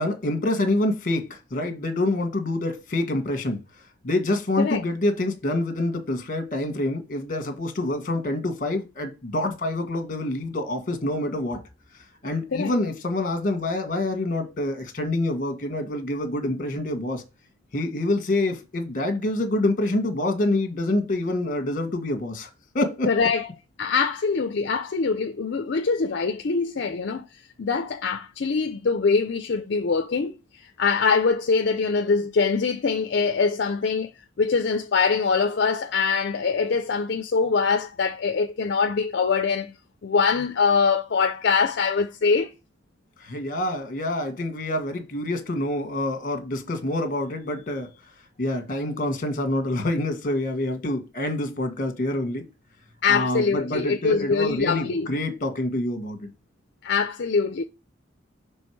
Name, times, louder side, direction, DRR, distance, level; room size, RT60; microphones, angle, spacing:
voice 1, 0.0-3.6 4.0-11.6 12.2-17.2 17.7-22.5 22.7-23.1 43.2-47.9 48.4-52.4 53.1-56.3, left 1 dB, 45° left, 1.3 m, -26 dB
voice 2, 23.1-23.5 23.8-27.3 27.6-34.1 34.4-39.7 40.0-42.5 53.0-55.1 56.8-57.6, left 5 dB, 60° left, 0.5 m, -23 dB
6.3 x 3.4 x 4.5 m
head